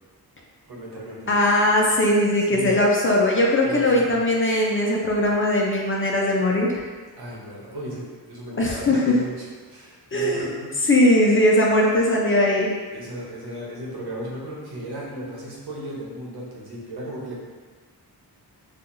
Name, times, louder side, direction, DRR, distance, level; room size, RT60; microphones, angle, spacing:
voice 1, 0.7-1.4 2.5-2.7 3.6-4.2 7.2-10.8 12.9-17.4, right 1 dB, 70° right, -4 dB, 1.1 m, -35 dB
voice 2, 1.3-6.9 8.6-9.1 10.1-10.5 10.9-12.7, left 1 dB, 30° left, -2 dB, 0.5 m, -20 dB
4.4 x 2.4 x 2.6 m, 1.4 s
cardioid pair, 85°, 40 cm